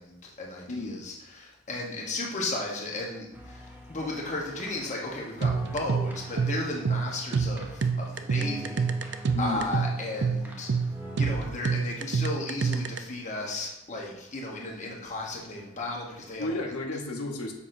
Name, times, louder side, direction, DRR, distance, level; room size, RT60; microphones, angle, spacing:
voice 1, 0.0-10.7 11.2-16.6, left 2 dB, 35° left, -2 dB, 1.1 m, -35 dB
voice 2, 0.7-1.0 9.3-9.7 16.4-17.5, left 2 dB, 90° left, 2 dB, 1.0 m, -32 dB
sound 1, 3.3-11.5, equal, 10° right, 0.6 m, -45 dB
sound 2, 5.4-13.0, right 5 dB, 50° right, 0.4 m, -27 dB
7.0 x 5.7 x 2.6 m, 0.92 s
head